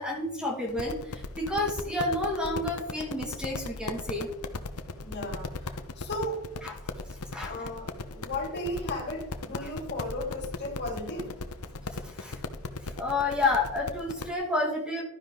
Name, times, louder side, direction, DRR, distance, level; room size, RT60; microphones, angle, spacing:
voice 1, 0.0-4.3 6.6-6.7 7.3-7.6 9.6-9.7 12.0-12.4 12.8-15.0, left 2 dB, 5° right, -1 dB, 2.2 m, -30 dB
sound 1, 0.7-14.3, left 3 dB, 85° left, 1.0 m, -38 dB
voice 2, 5.0-6.4 7.4-11.3, left 1 dB, 50° left, 0 dB, 3.3 m, -35 dB
12.0 x 10.0 x 3.9 m, 0.82 s
head